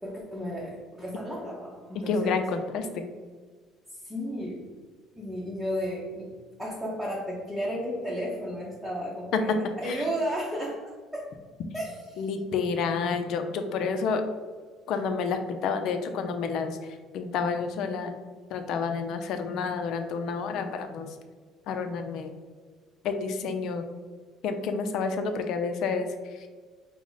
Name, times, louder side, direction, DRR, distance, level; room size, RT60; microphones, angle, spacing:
voice 1, 0.0-2.4 3.9-4.7 5.2-6.3 6.6-11.3 11.7-12.2, equal, 5° right, -6 dB, 0.8 m, -33 dB
voice 2, 2.1-3.0 9.9-10.1 12.2-14.2 14.9-18.1 18.5-21.1 21.7-22.3 23.0-23.9 24.4-26.5, left 5 dB, 65° left, 7 dB, 0.5 m, -29 dB
4.7 x 2.1 x 3.9 m, 1.5 s
cardioid pair, 120°, 0 cm